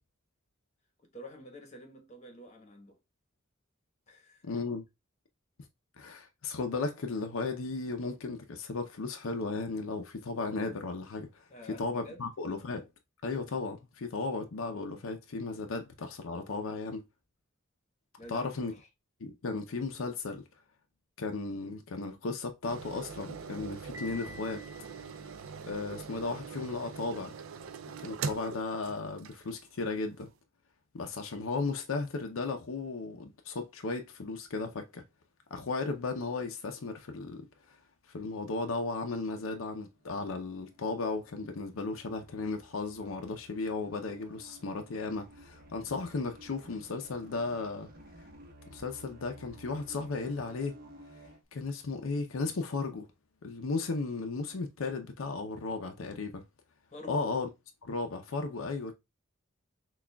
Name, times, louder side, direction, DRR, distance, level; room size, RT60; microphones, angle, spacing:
voice 1, 1.1-3.0 4.1-4.5 11.5-12.2 18.2-18.9 56.9-57.3, left 1 dB, 35° left, 1.0 m, -48 dB
voice 2, 4.4-4.9 6.0-11.5 11.8-12.9 13.2-17.0 18.3-18.7 19.2-20.4 21.2-24.6 25.7-27.4 28.0-30.3 30.9-35.0 35.5-37.8 38.1-47.9 48.2-48.3 48.7-50.8 51.5-53.1 53.4-56.4 57.1-57.5 57.8-58.9, left 3 dB, 85° left, 0.6 m, -35 dB
sound 1, 22.7-29.7 30.2-30.3, right 5 dB, 75° right, 0.4 m, -42 dB
Piano, 23.9-25.9, left 2 dB, 15° right, 0.5 m, -50 dB
sound 2, 40.0-51.4, right 1 dB, 50° right, 0.9 m, -55 dB
5.9 x 2.4 x 2.2 m
head